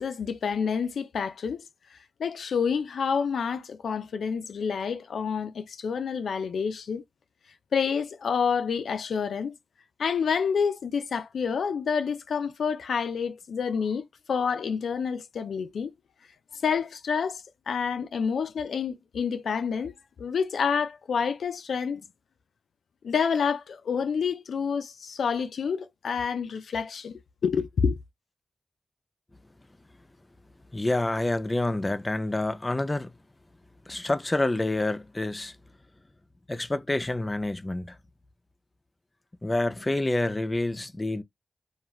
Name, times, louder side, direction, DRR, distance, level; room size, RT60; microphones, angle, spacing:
voice 1, 0.0-1.7 1.9-7.0 7.7-9.5 10.0-15.9 16.5-19.9 20.2-22.0 23.0-28.0, left 6 dB, 90° left, 0.3 m, -28 dB
voice 2, 30.7-33.1 33.9-35.5 36.5-38.0 39.4-41.2, left 2 dB, 25° left, 0.4 m, -28 dB
2.4 x 2.3 x 3.0 m
cardioid pair, 70°, 0 cm